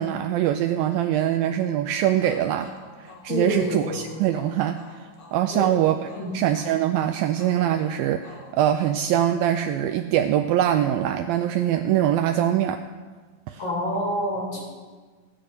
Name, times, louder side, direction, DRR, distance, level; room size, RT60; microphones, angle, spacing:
voice 1, 0.0-2.7 3.0-4.8 5.3-6.0 6.3-12.8 13.5-13.6, right 11 dB, 85° right, 7 dB, 2.1 m, -23 dB
sound 1, 2.2-9.8, left 2 dB, 75° left, 4.5 m, -48 dB
voice 2, 3.3-4.0 5.5-5.7 6.2-6.4 13.6-14.6, left 1 dB, 60° left, -5 dB, 5.1 m, -27 dB
16.5 x 10.0 x 5.2 m, 1.5 s
omnidirectional pair, 4.6 m